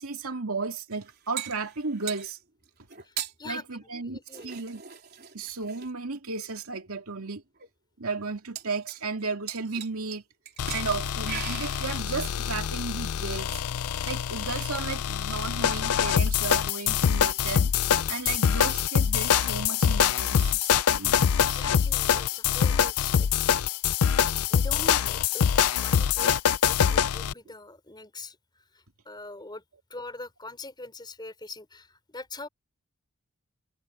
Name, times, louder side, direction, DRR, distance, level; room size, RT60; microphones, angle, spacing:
voice 1, 0.0-2.4 3.4-4.8 5.3-7.4 8.0-10.2 10.7-13.6 14.0-17.7 18.1-21.2, right 4 dB, 75° right, 2.5 m, -34 dB
sound 1, 0.9-2.3 2.9-3.3 4.3-5.9 6.7-6.8 7.2-7.3 7.6-7.7 8.5-9.2 9.5-10.2 10.5-10.9 11.3-12.0, right 10 dB, 45° right, 4.0 m, -39 dB
voice 2, 3.0-4.6 21.4-23.3 24.5-29.6 29.9-32.5, left 2 dB, 20° left, 4.2 m, -43 dB
sound 2, 10.6-27.3, left 8 dB, 85° left, 0.5 m, -25 dB
head